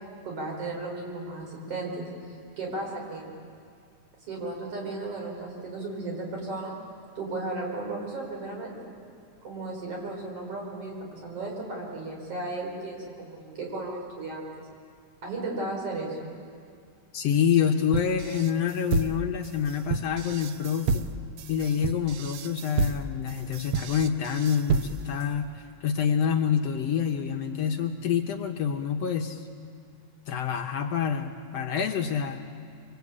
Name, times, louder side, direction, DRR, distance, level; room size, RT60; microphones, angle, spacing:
voice 1, 0.2-2.1 2.6-3.3 4.3-6.7 7.2-8.8 9.4-14.5 15.2-16.3, right 2 dB, 50° right, 0 dB, 5.9 m, -35 dB
voice 2, 17.1-21.0 21.5-29.4 30.3-32.4, left 8 dB, 65° left, 4 dB, 2.0 m, -27 dB
sound 1, 17.9-25.2, right 4 dB, 65° right, 1.6 m, -30 dB
25.5 x 25.0 x 8.6 m, 2.2 s
omnidirectional pair, 3.3 m